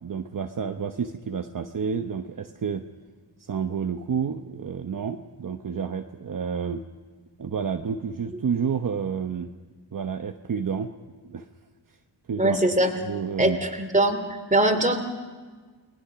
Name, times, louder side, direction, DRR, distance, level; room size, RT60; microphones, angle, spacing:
voice 1, 0.0-2.8 3.4-6.8 7.4-9.5 9.9-10.9 11.3-11.5 12.3-12.6 13.0-13.6, right 6 dB, 45° right, 5 dB, 1.0 m, -29 dB
voice 2, 12.4-12.9 13.4-14.2 14.5-15.0, right 1 dB, 15° right, 6 dB, 2.6 m, -21 dB
29.0 x 20.0 x 5.9 m, 1.4 s
wide cardioid pair, 95°, 44 cm